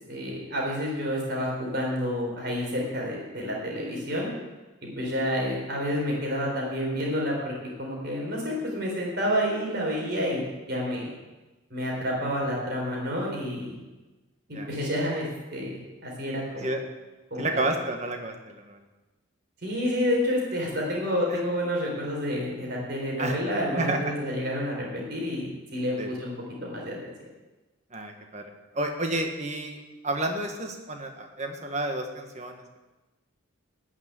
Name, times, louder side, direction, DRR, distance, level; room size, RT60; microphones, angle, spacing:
voice 1, 0.1-4.3 4.8-7.5 7.8-10.4 10.7-11.1 11.7-13.8 14.5-16.7 17.3-17.7 19.6-26.3 26.6-27.1, equal, 50° right, -2 dB, 4.3 m, -29 dB
voice 2, 17.4-18.8 21.3-21.4 23.2-23.3 23.8-24.1 26.0-26.1 27.9-32.6, right 2 dB, 35° right, 4 dB, 1.5 m, -31 dB
14.0 x 6.4 x 9.3 m, 1.1 s
head